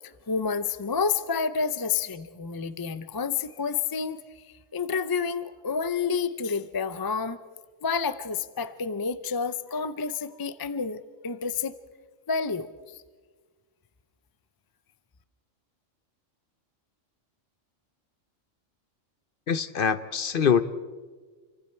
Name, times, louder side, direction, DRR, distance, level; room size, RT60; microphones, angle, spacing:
voice 1, 0.0-4.4 4.7-7.4 7.8-11.8 12.3-13.0, left 5 dB, 30° left, 13 dB, 0.4 m, -29 dB
voice 2, 19.5-20.6, left 7 dB, 50° left, 13 dB, 0.8 m, -24 dB
29.0 x 24.0 x 4.4 m, 1.4 s
omnidirectional pair, 1.3 m